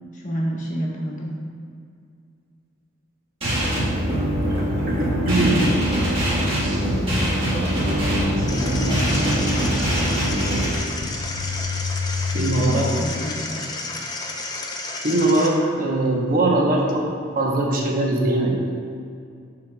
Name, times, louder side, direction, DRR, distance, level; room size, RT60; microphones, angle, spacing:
voice 1, 0.1-1.3 6.8-8.4 8.8-9.5 12.4-13.7, equal, 40° left, -3 dB, 1.0 m, -30 dB
sound 1, 3.4-10.7, equal, 30° right, 1.4 m, -22 dB
voice 2, 4.4-5.7 12.3-12.9 15.0-18.7, right 2 dB, 45° right, -1 dB, 0.8 m, -21 dB
sound 2, 8.2-13.8, left 3 dB, 85° left, 0.7 m, -30 dB
sound 3, 8.5-15.5, left 3 dB, 20° left, 0.5 m, -32 dB
11.5 x 4.0 x 2.2 m, 2.3 s
head